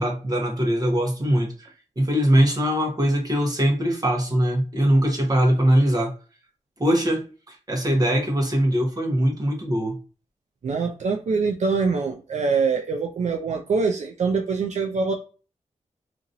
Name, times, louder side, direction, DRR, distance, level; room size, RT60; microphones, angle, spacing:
voice 1, 0.0-1.7 2.0-6.1 6.8-7.2 7.7-10.0, equal, 30° right, 1.0 m, -21 dB
voice 2, 10.6-15.1, right 4 dB, 65° right, 0.4 m, -24 dB
2.9 x 2.6 x 2.6 m
wide cardioid pair, 75°, 13 cm